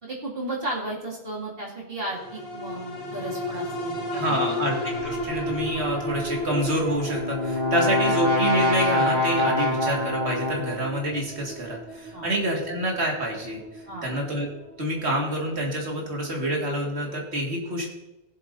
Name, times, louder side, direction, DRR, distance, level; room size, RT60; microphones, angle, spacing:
voice 1, 0.0-4.6 7.7-7.9 12.1-12.3 13.9-14.1, right 2 dB, 60° right, -4 dB, 2.6 m, -34 dB
Sci-Fi Distant Horn, 2.1-16.8 17.2-17.3, equal, 55° left, 2.2 m, -34 dB
voice 2, 4.1-13.6 14.0-14.5 14.8-17.9, equal, 80° right, -1 dB, 2.3 m, -27 dB
Brass instrument, 6.7-10.9, left 1 dB, 40° right, 2.7 m, -25 dB
17.0 x 7.5 x 2.7 m, 1.0 s
omnidirectional pair, 1.1 m